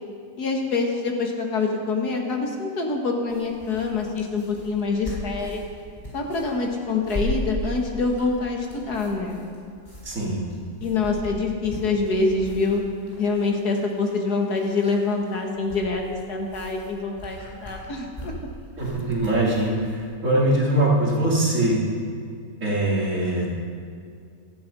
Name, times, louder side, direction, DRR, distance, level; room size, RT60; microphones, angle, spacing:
voice 1, 0.4-5.6 6.1-9.4 10.8-12.8 13.2-16.0 16.3-18.5, left 3 dB, 80° left, 1 dB, 2.5 m, -25 dB
sound 1, 3.3-20.0, equal, 25° left, 5.2 m, -38 dB
voice 2, 10.0-10.5 18.8-21.8 22.6-23.5, right 1 dB, 55° right, -4 dB, 3.4 m, -22 dB
17.0 x 14.0 x 5.5 m, 2.3 s
omnidirectional pair, 1.6 m